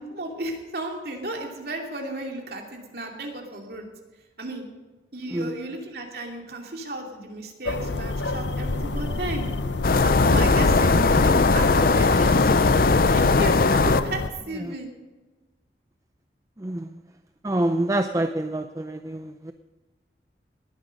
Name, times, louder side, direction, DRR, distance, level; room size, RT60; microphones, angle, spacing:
voice 1, 0.0-3.9 4.4-4.6 5.1-9.5 10.0-14.9, right 1 dB, 60° right, 1 dB, 2.7 m, -34 dB
sound 1, 7.7-14.3, left 3 dB, 85° left, 0.8 m, -29 dB
sound 2, 9.8-14.0, left 3 dB, 50° left, 0.5 m, -19 dB
voice 2, 16.6-17.0 17.4-19.5, right 1 dB, 20° right, 7 dB, 0.5 m, -27 dB
19.5 x 10.0 x 5.3 m, 1.2 s
head